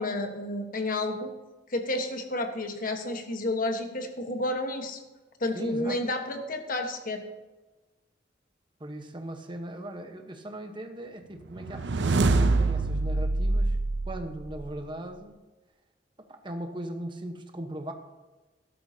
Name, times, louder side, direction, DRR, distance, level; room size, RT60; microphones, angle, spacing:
voice 1, 0.0-1.3 1.7-5.0 5.4-7.2, left 2 dB, 50° left, 5 dB, 1.3 m, -31 dB
voice 2, 5.5-6.0 8.8-13.8 14.1-15.4 16.3-17.9, right 1 dB, 30° right, 5 dB, 1.1 m, -39 dB
sound 1, 11.6-14.8, right 3 dB, 80° right, 0.6 m, -25 dB
13.5 x 12.0 x 2.8 m, 1.2 s
head